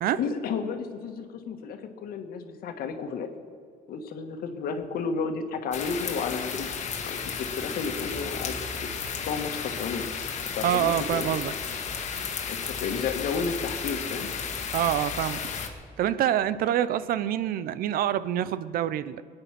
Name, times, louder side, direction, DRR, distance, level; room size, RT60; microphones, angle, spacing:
voice 1, 0.2-3.3 3.9-6.7 7.0-8.9 9.2-10.0 10.5-11.3 12.5-14.3, left 5 dB, 75° left, 6 dB, 1.7 m, -32 dB
sound 1, 5.7-15.7, left 6 dB, 50° left, 1.6 m, -33 dB
voice 2, 10.6-11.5 14.7-15.4 16.0-19.2, right 11 dB, 70° right, 15 dB, 0.7 m, -26 dB
21.5 x 9.7 x 6.0 m, 2.3 s
cardioid pair, 120°, 15 cm